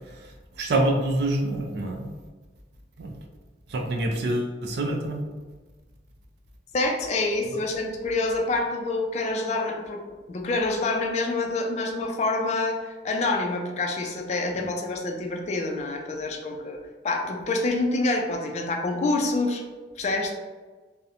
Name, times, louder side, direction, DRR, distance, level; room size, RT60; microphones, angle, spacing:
voice 1, 0.1-2.1 3.0-3.2 3.7-5.2 14.5-14.7, right 1 dB, 65° right, 2 dB, 0.4 m, -27 dB
voice 2, 6.7-10.0 10.3-12.8 13.0-16.8 17.0-19.6 20.0-20.3, left 2 dB, 40° left, 2 dB, 0.3 m, -27 dB
2.8 x 2.0 x 2.4 m, 1.3 s
head